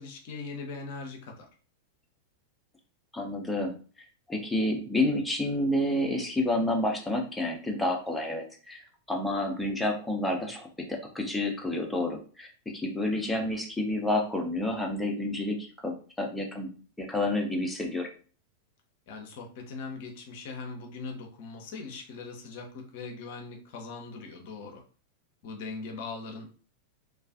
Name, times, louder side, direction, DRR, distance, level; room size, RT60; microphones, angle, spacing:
voice 1, 0.0-1.5 19.1-24.8 25.4-26.5, left 4 dB, 50° left, 2 dB, 0.5 m, -40 dB
voice 2, 3.1-3.8 4.3-16.7 17.0-18.1, left 1 dB, 5° left, 1 dB, 0.6 m, -29 dB
2.3 x 2.3 x 2.4 m, 0.39 s
figure-of-eight pair, 90°, 0 cm